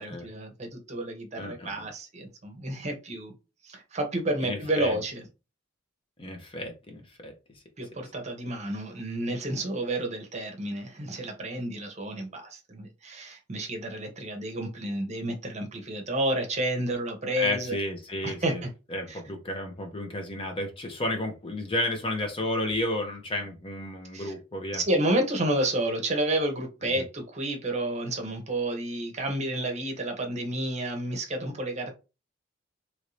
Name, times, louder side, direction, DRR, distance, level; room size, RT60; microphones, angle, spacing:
voice 1, 0.0-3.3 3.6-5.2 7.8-17.8 18.2-18.7 19.1-19.2 24.1-24.3 24.7-32.0, right 1 dB, 35° right, 3 dB, 0.8 m, -30 dB
voice 2, 1.4-1.8 4.4-5.0 6.2-7.3 17.4-18.6 18.9-24.8, left 1 dB, 25° left, 4 dB, 0.6 m, -32 dB
3.0 x 2.6 x 3.1 m, 0.29 s
head